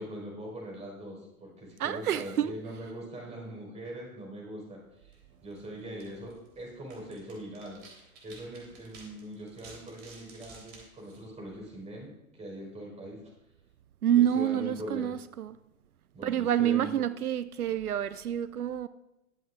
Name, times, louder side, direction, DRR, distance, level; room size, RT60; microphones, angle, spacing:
voice 1, 0.0-7.8 8.2-13.2 14.1-15.1 16.1-16.9, right 1 dB, 15° right, -2 dB, 4.5 m, -41 dB
voice 2, 1.8-2.5 14.0-15.6 16.2-18.9, right 10 dB, 85° right, 15 dB, 0.5 m, -28 dB
sound 1, 5.0-12.0, right 3 dB, 40° right, 3.6 m, -55 dB
21.0 x 7.6 x 2.5 m, 0.92 s
figure-of-eight pair, 105°, 43 cm